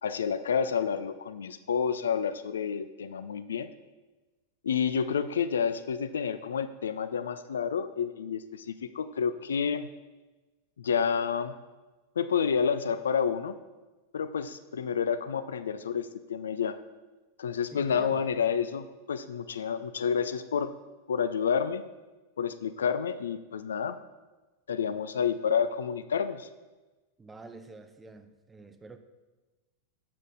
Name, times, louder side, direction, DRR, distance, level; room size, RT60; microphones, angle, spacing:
voice 1, 0.0-3.7 4.6-9.9 10.8-11.5 12.2-13.6 14.1-16.8 17.4-20.7 21.1-21.8 22.4-24.0 24.7-26.5, left 7 dB, 65° left, 12 dB, 0.3 m, -29 dB
voice 2, 17.7-18.3 27.2-29.0, right 3 dB, 15° right, 9 dB, 0.5 m, -47 dB
7.5 x 6.3 x 3.8 m, 1.2 s
figure-of-eight pair, 90°, 0 cm